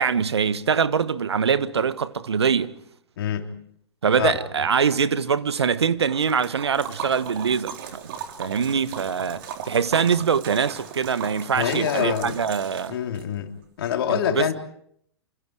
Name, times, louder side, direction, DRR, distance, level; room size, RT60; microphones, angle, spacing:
voice 1, 0.0-2.8 4.0-7.7 8.0-8.1 8.4-13.0 14.3-14.5, right 6 dB, 75° right, 1.4 m, -23 dB
voice 2, 3.2-3.5 4.2-4.3 11.5-12.4 12.9-13.5 13.8-14.5, left 9 dB, 60° left, 3.6 m, -25 dB
Liquid, 6.1-13.2, right 7 dB, 55° right, 3.8 m, -37 dB
28.0 x 26.5 x 4.9 m
figure-of-eight pair, 105°, 14 cm